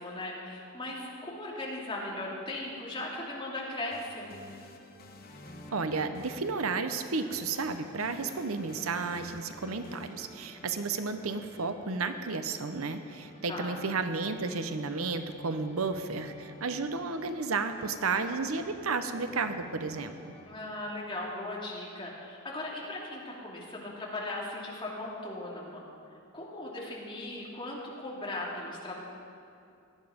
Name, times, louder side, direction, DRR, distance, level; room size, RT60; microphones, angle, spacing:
voice 1, 0.0-4.3 13.5-13.8 20.4-25.9 26.3-29.0, left 1 dB, 25° left, -4 dB, 2.7 m, -38 dB
sound 1, 3.9-11.8, left 1 dB, 45° left, 1.2 m, -52 dB
sound 2, 5.3-20.4, left 1 dB, 5° left, 3.7 m, -51 dB
voice 2, 5.7-20.3, right 4 dB, 75° right, 9 dB, 0.8 m, -32 dB
17.5 x 11.5 x 5.2 m, 2.5 s
head